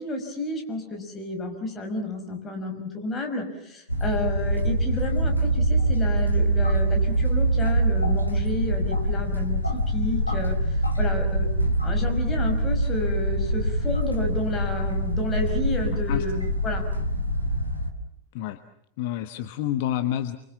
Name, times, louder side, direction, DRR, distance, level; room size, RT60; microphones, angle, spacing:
voice 1, 0.0-11.5 11.8-16.8, left 2 dB, 20° left, 4 dB, 5.6 m, -31 dB
sound 1, 3.9-17.9, right 1 dB, 90° left, 2.0 m, -24 dB
voice 2, 15.8-16.2 18.3-18.6 19.0-20.4, left 11 dB, 50° left, 10 dB, 1.2 m, -29 dB
29.0 x 24.0 x 7.3 m, 0.73 s
figure-of-eight pair, 90°, 0 cm